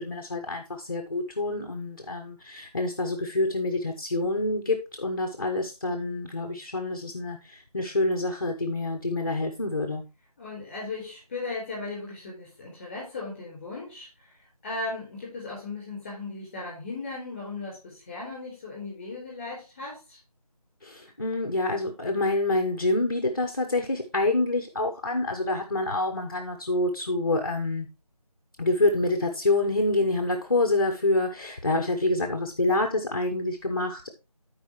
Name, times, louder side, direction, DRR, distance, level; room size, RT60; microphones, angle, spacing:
voice 1, 0.0-10.0 20.8-27.9 28.6-34.1, left 2 dB, 35° left, 5 dB, 1.0 m, -27 dB
voice 2, 10.4-14.3 14.6-20.2, left 3 dB, 15° left, -4 dB, 4.2 m, -37 dB
13.0 x 4.8 x 3.1 m, 0.27 s
figure-of-eight pair, 175°, 20 cm